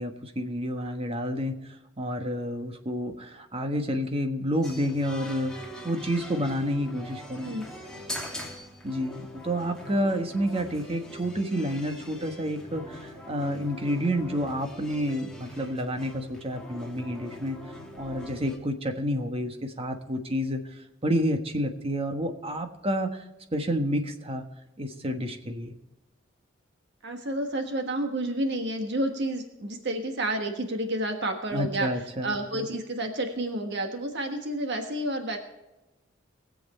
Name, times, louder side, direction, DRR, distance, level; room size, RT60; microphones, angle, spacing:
voice 1, 0.0-7.5 8.8-17.6 18.0-23.2 23.5-24.4 24.8-25.7 31.5-32.7, equal, 30° right, 5 dB, 1.4 m, -29 dB
sound 1, 4.6-18.6, left 1 dB, 5° left, 2.3 m, -42 dB
voice 2, 27.0-31.9 32.2-35.4, right 1 dB, 60° right, 5 dB, 1.4 m, -30 dB
20.5 x 7.8 x 4.3 m, 1.0 s
head